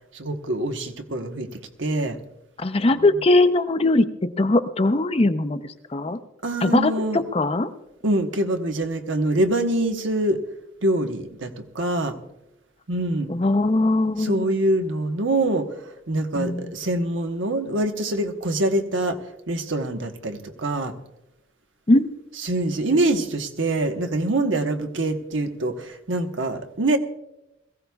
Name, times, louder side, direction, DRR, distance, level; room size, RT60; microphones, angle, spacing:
voice 1, 0.1-1.5 1.8-2.2 6.4-7.2 8.0-10.4 10.8-12.1 12.9-13.3 14.2-15.7 16.1-19.2 19.5-20.9 22.4-27.0, right 1 dB, 85° right, 5 dB, 1.2 m, -24 dB
voice 2, 2.6-5.6 5.9-6.2 6.6-7.7 13.3-14.5 16.4-16.7 21.9-22.1, left 2 dB, 30° left, 10 dB, 0.6 m, -20 dB
22.0 x 15.5 x 2.3 m, 0.91 s
head